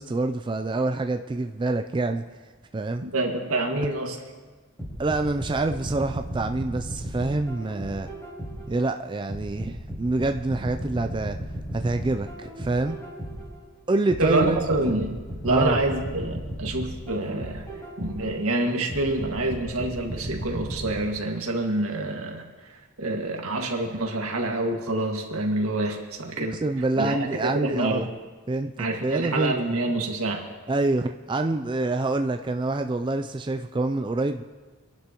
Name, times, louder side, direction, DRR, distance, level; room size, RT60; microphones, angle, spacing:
voice 1, 0.0-2.2 2.7-3.1 5.0-8.1 8.7-11.4 11.7-13.0 13.9-14.7 15.5-15.8 26.4-28.1 28.5-29.8 30.7-34.4, right 2 dB, 20° right, 7 dB, 0.3 m, -26 dB
voice 2, 3.0-4.2 14.2-15.1 15.4-17.6 18.0-26.6 27.0-28.1 28.8-30.4, right 2 dB, 85° right, 2 dB, 1.9 m, -27 dB
sound 1, 4.8-8.8 9.3-13.6 14.1-18.4 18.9-20.9, equal, 15° left, 4.4 m, -35 dB
25.5 x 11.5 x 3.0 m, 1.4 s
head